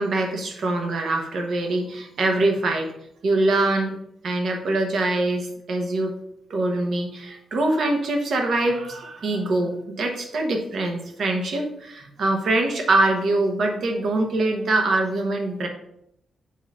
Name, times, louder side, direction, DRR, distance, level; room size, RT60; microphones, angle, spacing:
voice 1, 0.0-2.9 3.2-3.9 4.2-6.1 6.5-15.7, right 2 dB, 55° right, 3 dB, 1.2 m, -23 dB
7.5 x 2.9 x 5.6 m, 0.76 s
wide cardioid pair, 155°, 0 cm